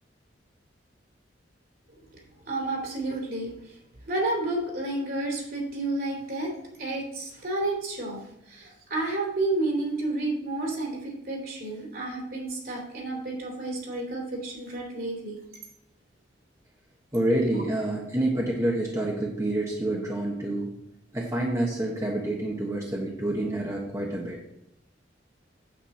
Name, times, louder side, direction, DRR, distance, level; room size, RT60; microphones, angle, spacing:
voice 1, 2.5-3.5 4.1-6.5 6.8-8.2 8.5-15.4 17.5-17.7, right 2 dB, 55° right, -1 dB, 3.3 m, -30 dB
voice 2, 17.1-20.7 21.1-24.4, right 1 dB, 15° right, -2 dB, 1.3 m, -28 dB
8.6 x 8.2 x 4.3 m, 0.82 s
head